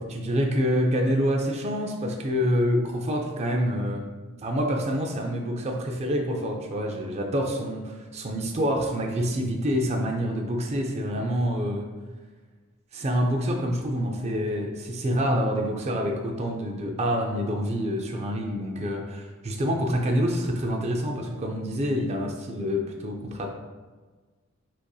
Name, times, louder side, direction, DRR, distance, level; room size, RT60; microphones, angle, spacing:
voice 1, 0.0-4.0 4.4-11.9 12.9-23.5, equal, 30° right, 1 dB, 0.4 m, -27 dB
7.3 x 2.6 x 2.3 m, 1.4 s
head